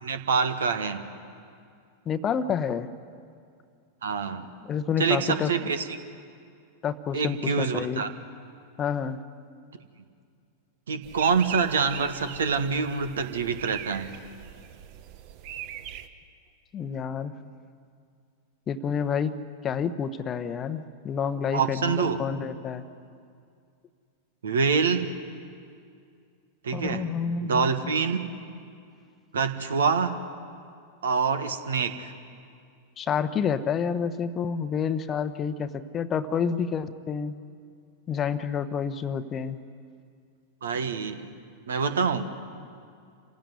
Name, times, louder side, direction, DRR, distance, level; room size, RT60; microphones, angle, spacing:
voice 1, 0.0-1.0 4.0-4.5 5.0-5.8 7.1-8.1 10.9-14.1 21.5-22.2 24.4-25.1 26.6-27.0 27.4-28.2 29.3-30.2 31.0-32.1 40.6-41.3 41.7-42.3, right 5 dB, 65° right, 9 dB, 1.6 m, -26 dB
voice 2, 2.1-2.9 4.6-5.5 6.8-8.0 8.8-9.2 16.7-17.3 18.7-19.4 19.6-22.8 26.7-27.7 33.0-37.3 38.1-39.6, left 7 dB, 25° left, 13 dB, 1.0 m, -29 dB
sound 1, 11.0-16.1, right 10 dB, 45° right, 1.2 m, -40 dB
28.0 x 16.0 x 9.6 m, 2.3 s
figure-of-eight pair, 90°, 0 cm